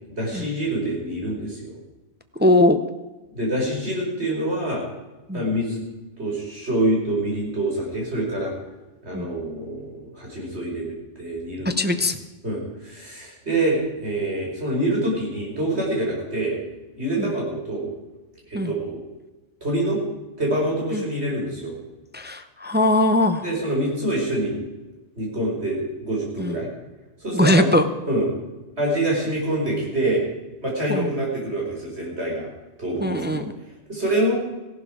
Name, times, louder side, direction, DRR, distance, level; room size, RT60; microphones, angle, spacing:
voice 1, 0.1-1.8 3.3-4.8 5.3-5.8 6.2-8.5 9.0-10.9 11.2-11.8 12.4-16.6 16.9-17.9 18.5-19.0 19.6-20.0 20.4-21.7 23.4-24.6 25.1-26.7 27.2-27.7 28.1-28.3 28.8-30.2 30.6-32.5 32.8-33.4 33.9-34.3, right 1 dB, 55° right, -2 dB, 5.0 m, -25 dB
voice 2, 2.4-2.8 5.3-5.4 9.1-9.3 11.6-12.2 17.2-17.3 18.5-18.7 20.9-21.0 22.1-23.5 26.4-26.5 27.3-27.9 30.9-31.1 33.0-33.4, left 1 dB, 10° right, 8 dB, 0.5 m, -20 dB
15.5 x 12.0 x 4.9 m, 1.1 s
omnidirectional pair, 1.3 m